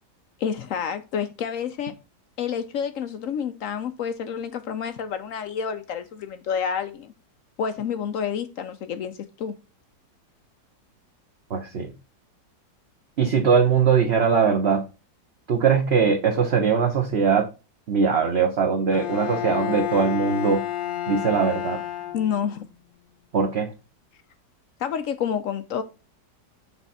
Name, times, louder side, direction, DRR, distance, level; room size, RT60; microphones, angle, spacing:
voice 1, 0.4-1.9 2.4-7.1 7.6-9.5 22.1-22.6 24.8-25.8, left 7 dB, 75° left, 0.7 m, -29 dB
voice 2, 11.5-11.9 13.2-14.8 15.5-17.5 17.9-20.6 21.1-21.8 23.3-23.7, right 6 dB, 50° right, 0.9 m, -21 dB
Bowed string instrument, 18.9-22.6, left 12 dB, 90° left, 1.6 m, -30 dB
7.4 x 3.5 x 4.0 m
omnidirectional pair, 2.0 m